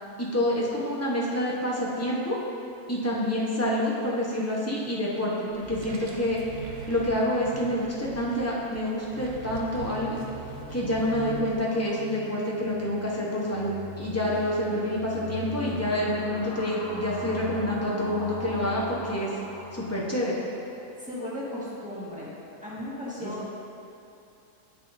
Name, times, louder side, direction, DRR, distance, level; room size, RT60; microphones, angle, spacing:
voice 1, 0.2-2.4 2.9-6.4 6.9-10.2 10.7-19.4 19.7-20.3 23.2-23.3, left 1 dB, 10° left, -6 dB, 0.8 m, -28 dB
sound 1, 5.5-11.5, right 4 dB, 60° right, 1.0 m, -41 dB
sound 2, 10.0-20.8, left 1 dB, 40° left, 1.0 m, -39 dB
voice 2, 21.0-22.3 22.6-23.5, left 1 dB, 5° right, -9 dB, 1.5 m, -36 dB
9.5 x 6.4 x 2.7 m, 2.6 s
omnidirectional pair, 1.7 m